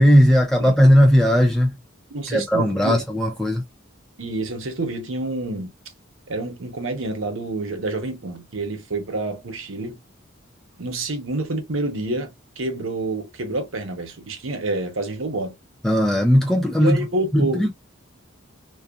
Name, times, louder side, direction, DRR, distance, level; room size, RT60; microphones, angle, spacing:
voice 1, 0.0-1.7 2.3-3.6 15.8-17.0 17.3-17.7, equal, ahead, 0.3 m, -17 dB
voice 2, 2.1-3.0 4.2-5.7 6.3-10.0 10.8-15.5 16.8-17.7, right 2 dB, 70° right, 0.9 m, -28 dB
2.7 x 2.3 x 2.3 m
head